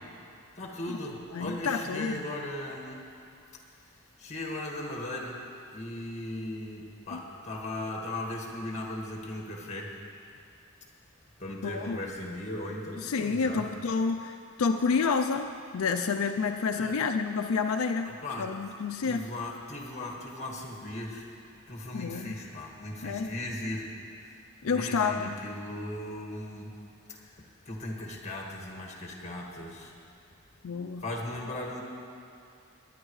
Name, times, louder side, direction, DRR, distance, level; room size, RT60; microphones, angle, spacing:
voice 1, 0.5-3.0 4.2-5.4 5.7-9.9 11.4-13.7 16.7-16.9 18.1-18.5 19.0-21.3 21.6-23.8 24.6-26.7 27.1-27.3 27.7-29.9 31.0-31.8, left 1 dB, 35° left, -1 dB, 1.7 m, -37 dB
voice 2, 1.3-2.2 7.1-7.2 11.6-12.0 13.0-18.1 18.4-19.2 21.9-22.4 23.0-23.3 24.6-25.4 30.6-31.0, left 5 dB, 85° left, 5 dB, 0.5 m, -29 dB
20.5 x 10.0 x 3.2 m, 2.5 s
head